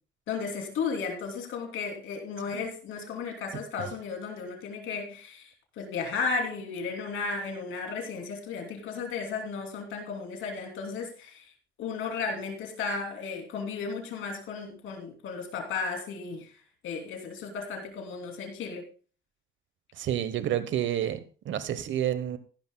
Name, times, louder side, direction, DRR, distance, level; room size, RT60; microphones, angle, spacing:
voice 1, 0.3-5.5 5.8-11.5 11.8-16.5 16.8-18.8, left 5 dB, 85° left, 2 dB, 3.1 m, -34 dB
voice 2, 20.0-22.4, right 11 dB, 70° right, 12 dB, 1.1 m, -29 dB
15.0 x 12.0 x 2.3 m, 0.39 s
cardioid pair, 90°, 20 cm